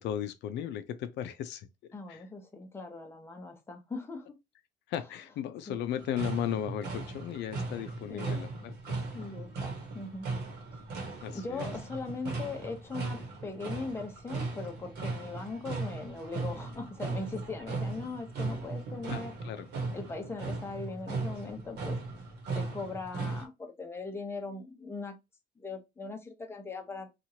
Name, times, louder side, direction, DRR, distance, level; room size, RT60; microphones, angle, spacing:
voice 1, 0.0-1.7 2.1-2.2 4.9-8.7 11.2-11.7 19.1-19.7, left 10 dB, 75° left, 0.4 m, -36 dB
voice 2, 1.9-4.3 5.7-5.8 8.1-8.4 9.1-10.3 10.7-10.8 11.3-19.3 19.9-22.0 22.5-25.2 25.6-27.1, left 3 dB, 15° left, 0.7 m, -40 dB
sound 1, 6.0-23.5, right 3 dB, 70° right, 1.0 m, -37 dB
2.9 x 2.4 x 2.7 m
cardioid pair, 160°, 18 cm